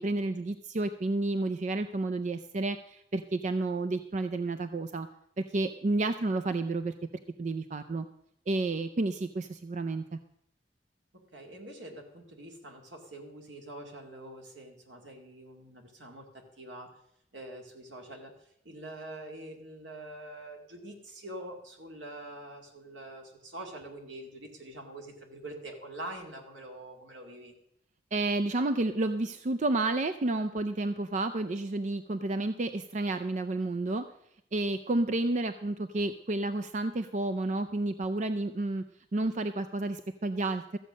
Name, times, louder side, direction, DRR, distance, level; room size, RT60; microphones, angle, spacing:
voice 1, 0.0-5.1 5.4-6.9 7.4-8.1 8.5-10.2 28.1-34.0 34.5-38.8 39.1-40.8, right 2 dB, 40° right, 10 dB, 0.5 m, -30 dB
voice 2, 11.1-16.9 17.3-18.3 18.6-27.5, right 1 dB, 80° right, 3 dB, 2.3 m, -45 dB
14.0 x 7.8 x 6.3 m, 0.73 s
head